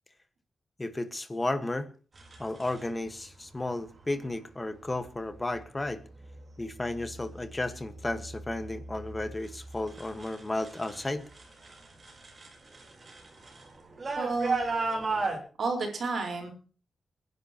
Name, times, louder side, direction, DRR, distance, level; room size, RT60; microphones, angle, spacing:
voice 1, 0.8-1.9 2.4-6.0 6.6-11.3, left 2 dB, 20° left, 9 dB, 1.5 m, -33 dB
Bicycle Chain Spinning, 2.2-2.8 4.0-4.3 4.9-5.3 5.9-6.4 6.8-11.1 11.3-15.4, right 3 dB, 35° right, 3.9 m, -36 dB
voice 2, 14.2-14.6 15.6-16.5, right 3 dB, 65° right, 1 dB, 4.5 m, -30 dB
28.5 x 11.0 x 3.0 m, 0.39 s
wide cardioid pair, 150°, 0 cm